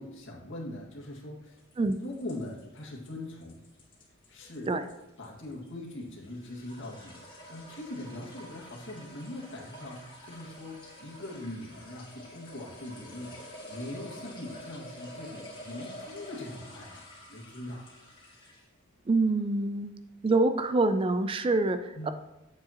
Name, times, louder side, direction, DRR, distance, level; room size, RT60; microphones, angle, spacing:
voice 1, 0.0-1.6 2.0-3.6 4.3-4.7 5.2-17.9 21.9-22.1, left 1 dB, 60° left, -2 dB, 1.9 m, -41 dB
sound 1, 1.6-18.7, left 1 dB, 25° left, 1.9 m, -48 dB
voice 2, 19.1-19.9 20.2-22.1, right 2 dB, 25° right, 10 dB, 0.3 m, -26 dB
8.8 x 7.5 x 2.9 m, 0.93 s
head